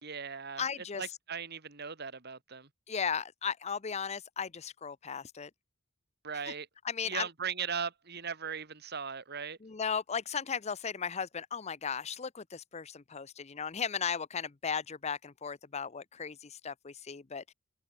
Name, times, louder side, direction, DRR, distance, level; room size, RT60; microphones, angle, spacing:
voice 1, 0.0-0.6 1.0-2.7 6.2-6.7 7.1-9.6, right 6 dB, 50° right, 2.2 m, -38 dB
voice 2, 0.6-1.1 2.9-5.5 6.5-6.6 6.8-7.3 9.6-17.5, left 6 dB, 30° left, 0.6 m, -36 dB
head